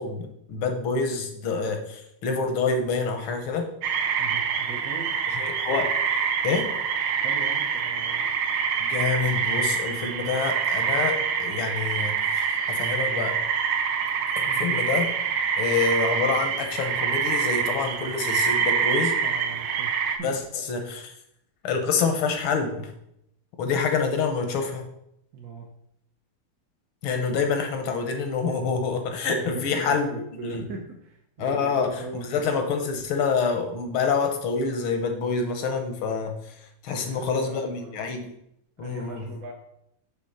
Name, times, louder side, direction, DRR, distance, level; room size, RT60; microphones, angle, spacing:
voice 1, 0.0-3.7 5.3-5.9 6.4-6.7 8.9-13.4 14.4-15.1 15.6-19.2 20.2-21.1 21.6-22.9 23.6-24.9 27.0-30.1 30.4-30.7 31.4-36.4 36.8-38.3 38.8-39.3, left 5 dB, 80° left, 5 dB, 1.8 m, -27 dB
sound 1, 3.8-20.2, right 6 dB, 85° right, 1.5 m, -26 dB
voice 2, 4.2-5.1 7.2-8.4 14.4-14.7 19.2-20.3 25.3-25.7 29.2-32.6 36.9-38.0 38.8-39.5, right 3 dB, 60° right, 0 dB, 0.9 m, -39 dB
6.3 x 3.6 x 5.7 m, 0.76 s
omnidirectional pair, 2.3 m